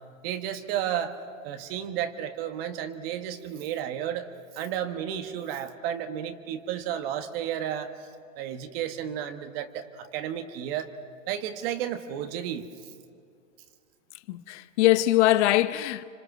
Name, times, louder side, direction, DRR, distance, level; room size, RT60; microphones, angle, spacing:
voice 1, 0.2-1.2 1.4-4.3 4.5-7.9 8.4-10.9 11.3-12.7, right 10 dB, 45° right, 1.5 m, -32 dB
voice 2, 14.3-16.0, left 15 dB, 55° left, 0.8 m, -22 dB
26.5 x 26.0 x 6.1 m
hypercardioid pair, 140°, 40 cm